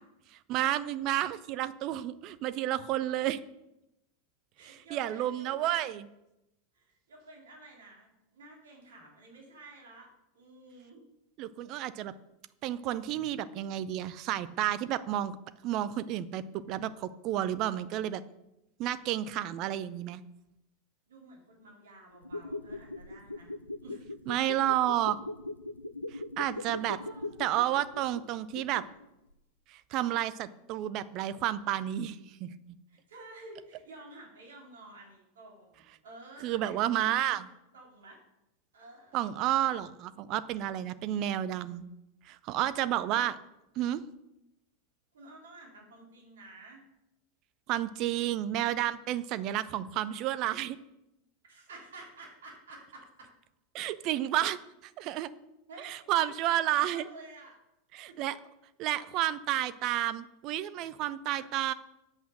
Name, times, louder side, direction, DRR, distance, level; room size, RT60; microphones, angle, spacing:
voice 1, 0.5-3.4 4.6-6.1 11.4-12.1 12.6-15.4 15.6-18.2 18.8-20.2 24.3-25.2 26.1-27.0 27.4-28.8 29.7-32.5 36.4-37.4 39.1-41.8 42.3-43.3 43.8-44.0 47.7-50.8 53.7-55.3 55.8-57.1 57.9-58.4 58.8-61.7, right 13 dB, 40° right, 15 dB, 0.5 m, -31 dB
voice 2, 4.6-5.8 6.7-11.0 21.1-23.5 23.8-24.1 26.5-27.4 32.9-37.4 37.7-38.2 38.7-39.2 39.6-39.7 42.7-43.3 45.1-46.8 51.5-53.1 55.7-57.6 58.1-58.2 61.3-61.5, right 2 dB, 65° right, 0 dB, 2.7 m, -51 dB
sound 1, 22.1-29.0 29.3-29.4, left 2 dB, 85° left, 0.5 m, -40 dB
8.9 x 7.9 x 6.3 m, 0.90 s
figure-of-eight pair, 85°, 0 cm